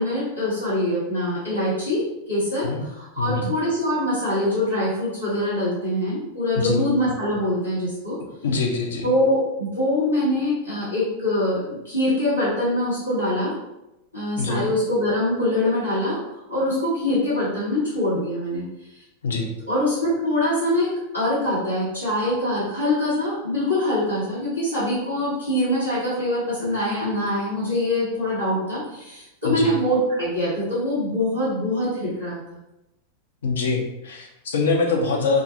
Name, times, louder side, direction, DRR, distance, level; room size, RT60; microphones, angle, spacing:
voice 1, 0.0-2.0 2.3-2.7 3.0-8.2 9.0-13.5 14.1-16.2 16.5-18.6 19.7-32.4, left 1 dB, 90° left, -13 dB, 1.2 m, -24 dB
voice 2, 3.2-3.5 6.6-6.9 8.4-9.1 14.4-14.7 19.2-19.5 29.4-29.8 33.4-35.4, left 4 dB, 65° left, 1 dB, 0.5 m, -24 dB
2.4 x 2.3 x 2.6 m, 0.93 s
figure-of-eight pair, 90°, 0 cm